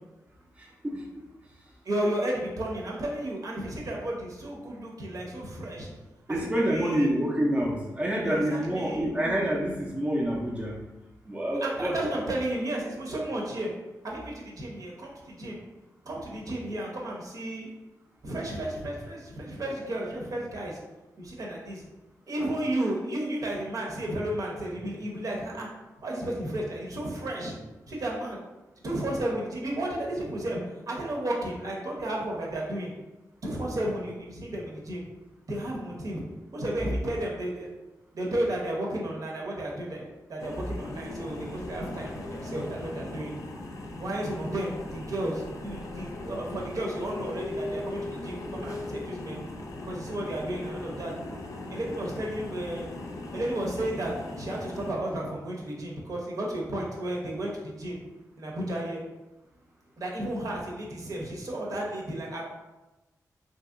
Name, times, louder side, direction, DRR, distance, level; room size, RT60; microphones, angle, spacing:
voice 1, 0.6-1.2 6.3-10.7 11.3-12.0, equal, 15° right, -2 dB, 0.5 m, -27 dB
voice 2, 1.8-5.9 6.3-7.1 8.2-9.1 11.6-13.7 14.0-15.6 16.1-17.7 18.2-20.8 21.2-21.8 22.3-25.7 26.0-27.5 27.9-28.4 28.8-30.6 30.9-32.9 33.4-35.0 35.5-36.2 36.5-37.7 38.1-40.0 40.3-43.3 44.0-49.4 49.8-51.1 51.7-52.9 53.3-58.0 58.4-59.0 60.0-62.4, right 1 dB, 60° right, -2 dB, 0.8 m, -33 dB
sound 1, 40.4-54.9, left 2 dB, 55° left, 0.5 m, -39 dB
2.9 x 2.7 x 2.5 m, 1.1 s
cardioid pair, 75°, 7 cm